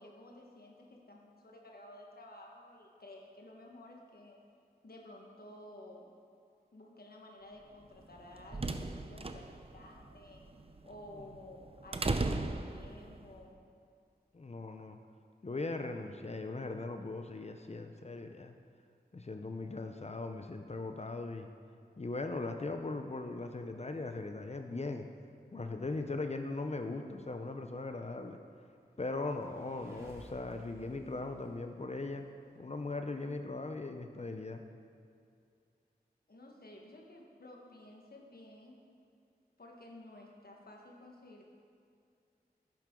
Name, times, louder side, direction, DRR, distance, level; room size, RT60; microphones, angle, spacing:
voice 1, 0.0-4.4 4.8-6.1 6.7-10.4 10.8-13.6 36.3-38.8 39.6-41.4, left 1 dB, 65° left, 0 dB, 1.4 m, -53 dB
sound 1, 8.0-13.3, right 3 dB, 35° right, 0.6 m, -37 dB
voice 2, 14.3-15.0 15.4-18.5 19.1-21.5 22.0-25.1 25.5-28.4 29.0-32.3 32.6-34.6, left 3 dB, 40° left, 5 dB, 0.7 m, -39 dB
sound 2, 29.0-32.6, equal, 15° right, 2.3 m, -57 dB
12.0 x 9.2 x 3.8 m, 2.4 s
cardioid pair, 45°, 17 cm